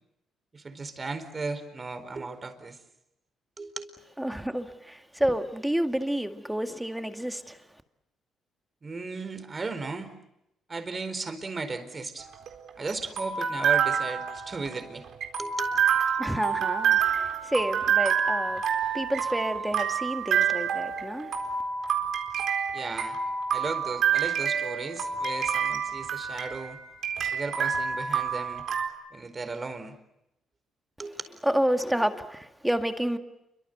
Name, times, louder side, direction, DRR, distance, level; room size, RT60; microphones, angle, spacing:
voice 1, 0.5-2.8 3.6-3.9 8.8-10.1 10.7-12.3 12.8-15.0 15.4-15.7 22.7-23.2 23.5-26.8 27.3-28.6 29.1-29.9 31.0-31.2, right 3 dB, 30° right, 4.5 m, -35 dB
voice 2, 4.2-7.6 16.2-18.6 18.9-21.3 31.4-33.2, equal, 5° right, 2.1 m, -29 dB
sound 1, 12.2-28.9, right 7 dB, 70° right, 4.2 m, -28 dB
29.0 x 24.5 x 8.0 m
cardioid pair, 90°, 0 cm